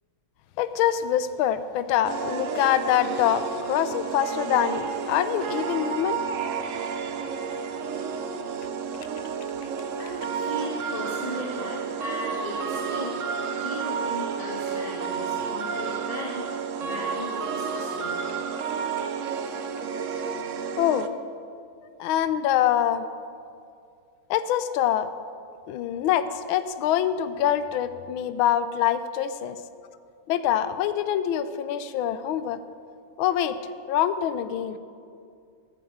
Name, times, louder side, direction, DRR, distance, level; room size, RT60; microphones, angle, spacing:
voice 1, 0.6-6.2 20.8-21.1 22.0-23.1 24.3-25.1 25.7-29.6 30.3-32.6 33.2-33.6 33.9-34.8, left 10 dB, 75° left, 12 dB, 1.4 m, -25 dB
sound 1, 2.0-21.1, right 6 dB, 90° right, 0.6 m, -31 dB
voice 2, 10.0-13.2 13.5-16.5 16.8-18.2, equal, 20° left, -3 dB, 1.5 m, -37 dB
16.5 x 9.2 x 7.9 m, 2.4 s
omnidirectional pair, 2.3 m